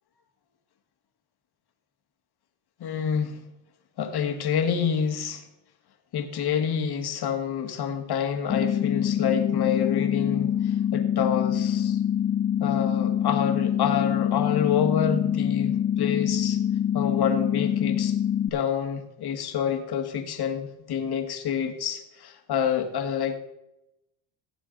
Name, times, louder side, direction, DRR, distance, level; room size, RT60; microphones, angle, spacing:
voice 1, 2.8-3.4 4.0-5.5 6.1-12.0 12.6-16.6 16.9-18.1 18.5-23.3, left 7 dB, 55° left, 6 dB, 1.9 m, -28 dB
sound 1, 8.5-18.5, left 9 dB, 30° left, 0.6 m, -25 dB
17.0 x 7.1 x 3.9 m, 0.89 s
cardioid pair, 95°, 47 cm